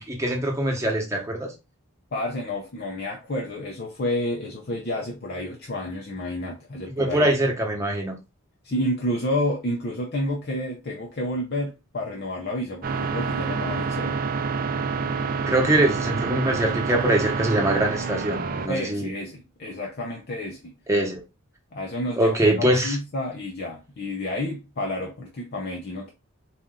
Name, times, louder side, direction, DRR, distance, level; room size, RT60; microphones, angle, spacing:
voice 1, 0.0-1.5 6.9-8.1 15.5-19.1 20.9-21.2 22.2-23.0, right 1 dB, 15° right, 1.0 m, -23 dB
voice 2, 2.1-7.3 8.6-14.2 18.7-20.8 21.7-26.1, left 1 dB, 45° left, 0.6 m, -30 dB
sound 1, 12.8-18.7, right 5 dB, 40° right, 0.4 m, -27 dB
4.2 x 2.5 x 3.6 m
head